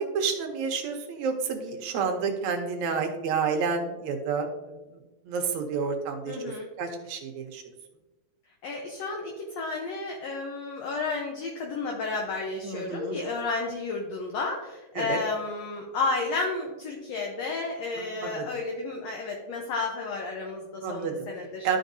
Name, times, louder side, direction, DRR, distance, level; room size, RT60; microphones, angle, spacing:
voice 1, 0.0-4.7 5.3-6.4 6.8-7.6 12.6-13.2 15.0-15.2 18.0-18.4 20.8-21.1 21.6-21.8, right 5 dB, 70° right, 4 dB, 2.0 m, -29 dB
voice 2, 6.3-6.7 8.6-21.7, left 3 dB, 70° left, 1 dB, 1.8 m, -32 dB
12.5 x 5.1 x 2.6 m, 1.1 s
omnidirectional pair, 3.6 m